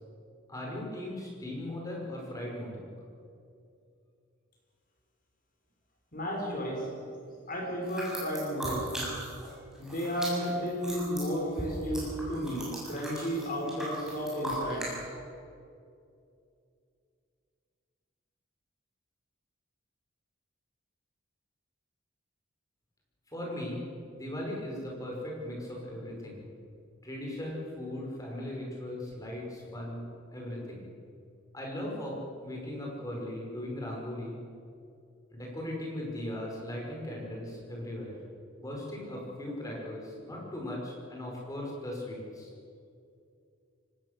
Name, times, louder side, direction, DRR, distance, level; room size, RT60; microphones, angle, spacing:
voice 1, 0.5-2.8 23.3-23.9 24.1-26.4 27.0-30.0 30.3-30.9 31.5-34.4 35.3-38.2 38.6-42.5, left 1 dB, 15° left, -2 dB, 5.4 m, -38 dB
voice 2, 6.1-6.9 7.5-9.2 9.8-15.2, equal, 40° left, -1 dB, 5.8 m, -33 dB
sound 1, 7.8-9.5 9.7-14.9, right 1 dB, 5° right, 6.9 m, -39 dB
24.0 x 18.5 x 6.8 m, 2.5 s
head